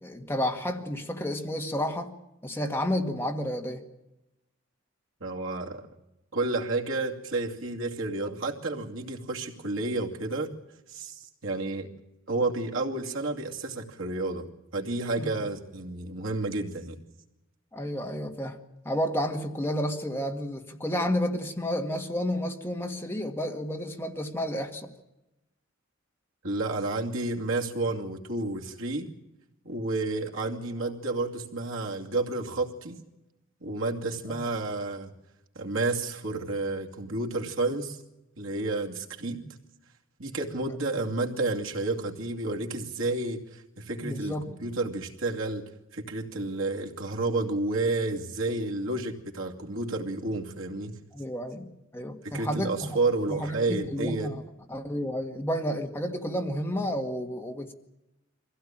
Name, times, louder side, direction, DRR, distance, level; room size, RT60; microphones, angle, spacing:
voice 1, 0.0-2.1 2.4-3.8 15.2-15.3 17.7-18.6 18.9-24.9 34.3-34.4 44.0-44.7 51.1-52.8 53.3-54.4 54.7-57.7, equal, 10° left, 3 dB, 1.9 m, -31 dB
voice 2, 5.2-5.8 6.3-10.5 10.9-11.9 12.3-14.5 14.7-17.0 26.4-29.1 29.6-33.0 33.6-35.1 35.5-38.0 38.4-39.4 40.2-45.6 45.9-51.0 52.2-54.3, right 2 dB, 75° right, 1 dB, 2.6 m, -30 dB
24.0 x 16.0 x 9.0 m, 0.94 s
head